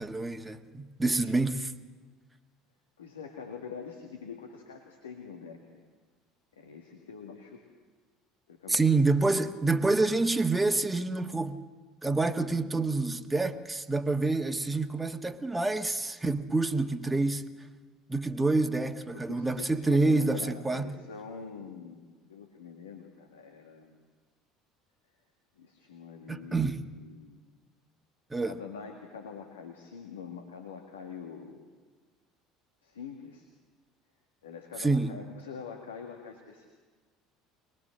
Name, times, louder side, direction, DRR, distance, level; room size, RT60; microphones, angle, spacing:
voice 1, 0.0-1.7 8.7-11.6 12.0-17.5 18.1-20.9 26.3-26.7 28.3-28.5 34.8-35.2, right 3 dB, 15° right, 1.4 m, -27 dB
voice 2, 3.0-5.8 6.6-7.6 8.5-8.9 19.1-24.0 25.6-27.4 28.4-31.6 32.8-33.5 34.4-36.7, left 6 dB, 85° left, 1.8 m, -44 dB
23.5 x 20.5 x 6.5 m
hypercardioid pair, 65°, 0 cm